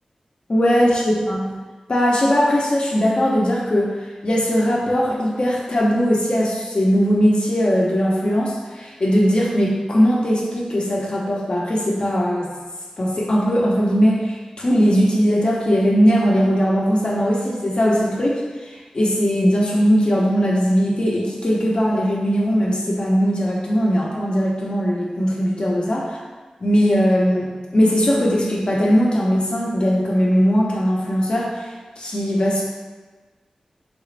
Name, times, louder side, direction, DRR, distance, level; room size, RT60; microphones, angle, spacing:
voice 1, 0.5-1.4 1.9-3.9 4.2-12.5 13.0-18.4 18.7-26.0 26.6-31.7 32.0-32.6, equal, 50° left, -3 dB, 1.0 m, -19 dB
4.0 x 3.5 x 3.3 m, 1.3 s
wide cardioid pair, 70°, 2 cm